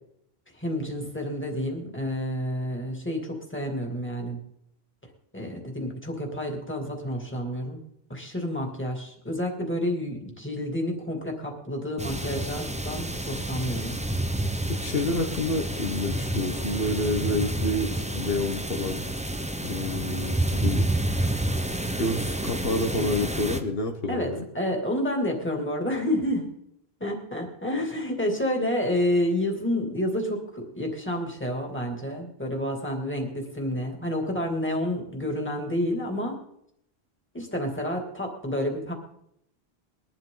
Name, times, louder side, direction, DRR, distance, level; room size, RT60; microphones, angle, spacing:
voice 1, 0.6-4.4 5.3-7.8 8.1-14.0 24.1-26.5 27.0-36.4 37.3-38.9, left 1 dB, 10° left, 1 dB, 2.6 m, -29 dB
sound 1, 12.0-23.6, right 1 dB, 5° right, 0.7 m, -29 dB
voice 2, 14.7-19.0 19.6-20.8 22.0-24.5, left 2 dB, 65° left, 3 dB, 1.5 m, -28 dB
21.0 x 12.0 x 3.9 m, 0.76 s
omnidirectional pair, 1.1 m